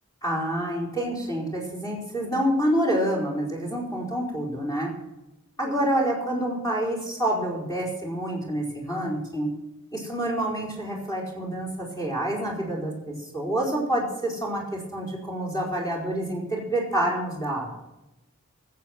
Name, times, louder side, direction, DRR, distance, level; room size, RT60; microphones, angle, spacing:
voice 1, 0.2-4.9 5.6-9.5 9.9-17.7, right 1 dB, 20° left, -3 dB, 4.7 m, -27 dB
21.0 x 8.4 x 6.0 m, 0.93 s
head